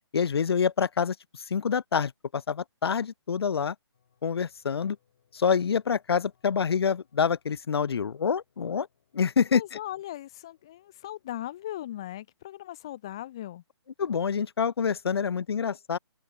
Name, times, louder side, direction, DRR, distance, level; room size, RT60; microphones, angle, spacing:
voice 1, 0.1-3.7 4.2-5.0 5.3-8.9 9.1-9.8 14.0-16.0, left 6 dB, 60° left, 0.5 m, -27 dB
sound 1, 3.9-12.1, left 8 dB, 35° left, 7.8 m, -72 dB
voice 2, 9.5-13.6, left 13 dB, 10° left, 0.4 m, -38 dB
open air
hypercardioid pair, 175°, 14 cm